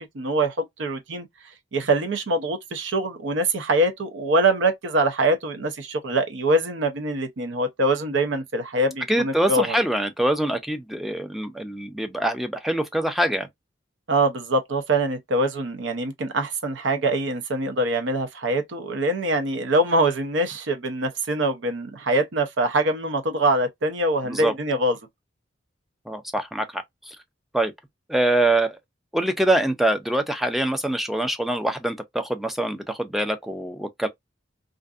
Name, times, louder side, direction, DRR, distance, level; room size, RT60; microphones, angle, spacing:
voice 1, 0.1-1.3 1.7-9.8 14.1-25.0, right 2 dB, 85° right, 0.6 m, -24 dB
voice 2, 9.1-13.5 24.2-24.5 26.1-27.2 27.5-27.7 28.1-28.8 29.1-34.1, right 1 dB, ahead, 0.4 m, -24 dB
2.5 x 2.5 x 2.3 m
head